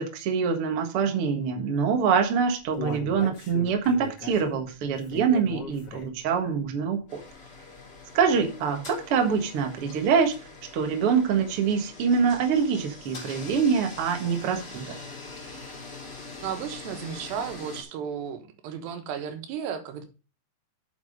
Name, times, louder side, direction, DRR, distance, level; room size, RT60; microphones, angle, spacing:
voice 1, 0.0-7.2 8.1-10.3 10.7-15.0, right 6 dB, 55° right, 5 dB, 1.6 m, -25 dB
Human voice, 2.1-6.3 6.7-6.8 7.3-7.4, left 4 dB, 50° left, 3.3 m, -38 dB
sound 1, 7.1-17.8, left 3 dB, 25° left, 3.4 m, -43 dB
voice 2, 16.4-20.1, right 7 dB, 85° right, 8 dB, 3.4 m, -34 dB
7.8 x 7.3 x 5.1 m, 0.33 s
omnidirectional pair, 4.8 m